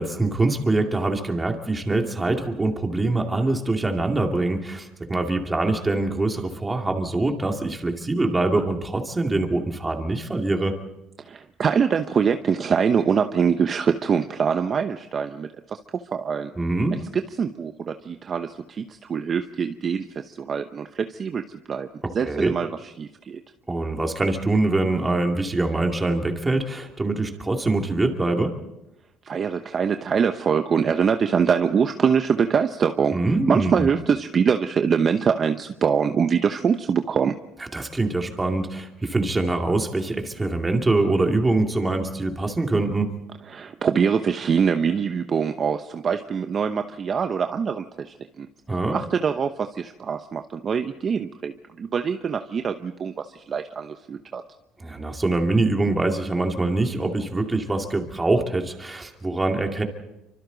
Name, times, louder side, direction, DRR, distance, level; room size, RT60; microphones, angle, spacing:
voice 1, 0.0-10.7 16.6-17.0 22.2-22.5 23.7-28.5 33.1-33.9 37.7-43.1 48.7-49.0 54.8-59.8, right 2 dB, 15° right, 3 dB, 2.4 m, -24 dB
voice 2, 11.2-15.8 16.1-16.5 16.9-21.9 22.1-23.4 29.2-33.2 33.5-37.3 43.5-48.5 48.9-54.4, right 6 dB, 35° right, 7 dB, 0.9 m, -24 dB
28.5 x 25.0 x 4.0 m, 0.94 s
cardioid pair, 125°, 0 cm